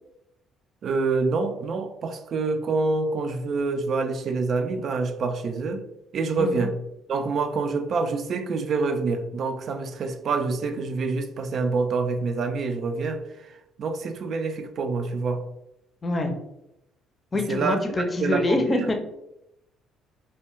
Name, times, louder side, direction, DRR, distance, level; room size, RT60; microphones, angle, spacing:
voice 1, 0.8-5.8 6.1-6.7 7.1-15.4 17.5-17.8 18.2-18.9, right 4 dB, 55° right, 7 dB, 0.3 m, -26 dB
voice 2, 6.4-6.7 16.0-16.3 17.3-18.9, left 2 dB, 30° left, 4 dB, 0.5 m, -25 dB
2.3 x 2.2 x 3.0 m, 0.85 s
hypercardioid pair, 55°, 0 cm